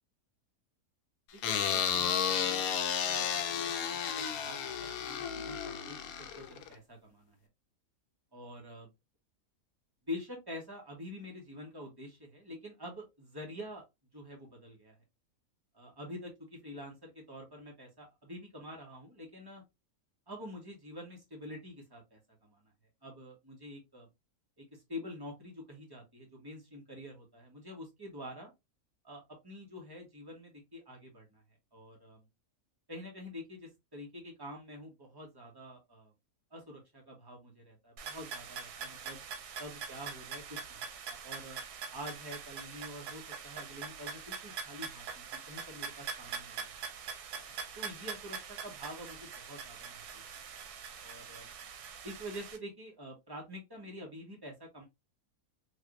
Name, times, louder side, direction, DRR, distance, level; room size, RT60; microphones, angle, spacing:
voice 1, 1.3-7.4 8.3-8.9 10.1-13.8 14.1-14.9 15.7-19.6 20.3-22.7 23.0-24.1 24.6-28.5 29.0-31.4 31.7-32.3 32.9-36.1 36.5-39.2 39.6-41.6 41.9-46.7 47.3-50.2 51.0-51.5 52.0-54.9, left 1 dB, 15° right, 1.2 m, -47 dB
sound 1, 1.4-6.7, left 8 dB, 75° left, 1.0 m, -32 dB
sound 2, 38.0-52.6, right 6 dB, 85° right, 1.2 m, -43 dB
3.3 x 2.9 x 2.5 m
omnidirectional pair, 1.6 m